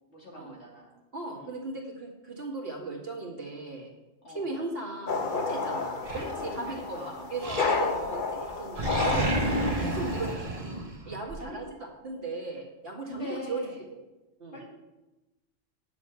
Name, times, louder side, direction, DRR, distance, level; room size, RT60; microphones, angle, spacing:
voice 1, 0.1-0.9 1.3-1.6 4.2-4.6 5.5-7.3 11.1-11.6 13.0-13.9 14.5-14.6, left 1 dB, 60° left, -3 dB, 3.0 m, -43 dB
voice 2, 1.1-3.9 4.3-9.3 9.8-10.5 11.1-11.6 12.0-13.6 14.4-14.6, right 3 dB, 50° right, 0 dB, 2.2 m, -37 dB
sound 1, 5.1-10.3, left 4 dB, 45° left, 1.0 m, -31 dB
Animal, 6.0-6.9 7.4-8.2 8.4-11.4, right 1 dB, 30° right, 1.2 m, -31 dB
9.9 x 6.8 x 6.9 m, 1.0 s
omnidirectional pair, 1.3 m